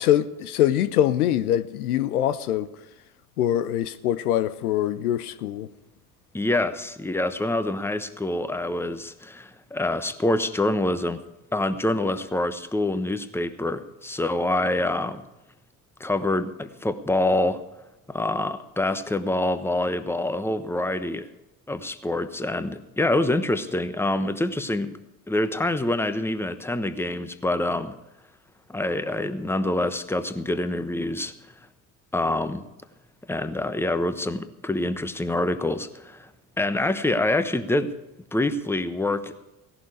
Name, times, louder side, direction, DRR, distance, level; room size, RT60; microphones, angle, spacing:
voice 1, 0.0-2.7 3.4-5.7, left 11 dB, 80° left, 0.7 m, -23 dB
voice 2, 6.3-11.2 11.5-15.2 16.0-17.6 18.1-21.3 21.7-25.0 25.3-28.0 28.7-31.3 32.1-32.7 33.3-36.3 36.6-37.9 38.3-39.3, left 1 dB, 5° left, 1.1 m, -26 dB
17.0 x 11.5 x 4.9 m
hypercardioid pair, 65°, 44 cm